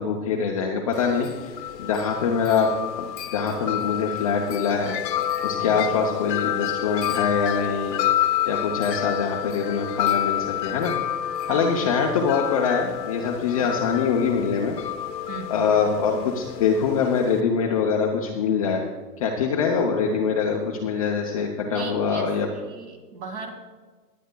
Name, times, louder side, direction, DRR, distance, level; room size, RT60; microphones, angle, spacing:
voice 1, 0.0-1.5 1.8-5.0 5.4-8.0 8.5-10.9 11.5-14.8 15.5-18.8 19.2-22.5, left 5 dB, 25° left, 0 dB, 0.4 m, -24 dB
Wind chime, 0.9-17.4, left 12 dB, 80° left, 0.9 m, -29 dB
voice 2, 5.5-6.0 11.5-11.8 15.3-15.7 21.7-23.6, right 4 dB, 45° right, 4 dB, 2.1 m, -38 dB
22.0 x 9.1 x 2.2 m, 1.3 s
hypercardioid pair, 145°, 49 cm